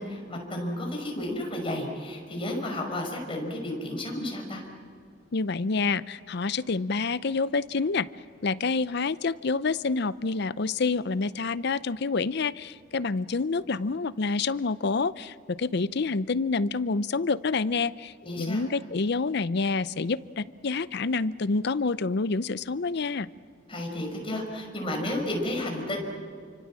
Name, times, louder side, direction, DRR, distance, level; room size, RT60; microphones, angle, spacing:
voice 1, 0.0-4.6 18.2-18.6 23.7-26.0, left 1 dB, 30° left, 1 dB, 5.6 m, -32 dB
voice 2, 5.3-8.1 8.4-23.3, left 4 dB, 60° left, 16 dB, 0.6 m, -28 dB
28.5 x 25.0 x 7.6 m, 2.2 s
head